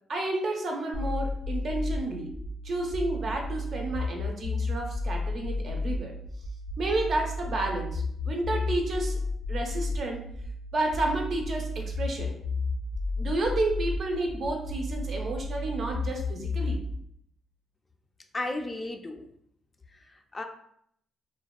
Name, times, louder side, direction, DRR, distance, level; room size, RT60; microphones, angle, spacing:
voice 1, 0.1-2.3 2.6-6.1 6.8-9.2 9.5-10.2 10.7-12.4 13.2-16.8, right 2 dB, 55° right, 2 dB, 0.5 m, -31 dB
sound 1, 0.9-16.9, left 2 dB, 85° left, 0.5 m, -32 dB
voice 2, 18.3-19.3 19.9-20.4, left 2 dB, 25° left, 4 dB, 0.3 m, -35 dB
2.7 x 2.1 x 2.3 m, 0.68 s
cardioid pair, 90°, 0 cm